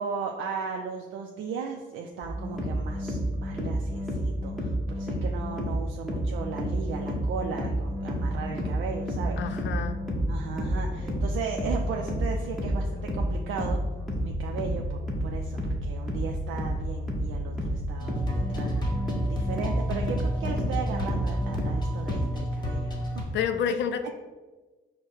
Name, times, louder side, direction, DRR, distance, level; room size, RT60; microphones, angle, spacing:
voice 1, 0.0-9.6 10.3-13.8 14.2-18.9 19.3-23.2 23.7-23.8, right 6 dB, 80° right, 2 dB, 0.4 m, -36 dB
sound 1, 2.2-22.2, equal, ahead, 1.1 m, -30 dB
sound 2, 8.0-11.2 11.5-12.5 13.1-13.2, equal, 50° right, 1.1 m, -41 dB
voice 2, 9.4-10.0 14.7-14.8 23.3-24.1, left 7 dB, 65° left, 9 dB, 0.4 m, -29 dB
sound 3, 18.0-23.2, equal, 20° left, 1.1 m, -31 dB
4.6 x 2.1 x 4.6 m, 1.2 s
cardioid pair, 90°, 20 cm